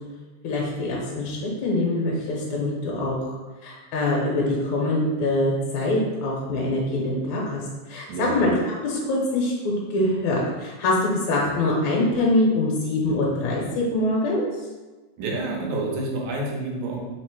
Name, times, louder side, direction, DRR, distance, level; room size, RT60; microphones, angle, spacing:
voice 1, 0.4-3.4 3.6-7.6 7.9-8.5 8.8-14.5, left 2 dB, 75° left, -4 dB, 2.0 m, -24 dB
voice 2, 8.1-8.4 15.2-17.0, right 2 dB, 85° right, -1 dB, 2.2 m, -28 dB
4.9 x 2.0 x 4.4 m, 1.3 s
omnidirectional pair, 3.4 m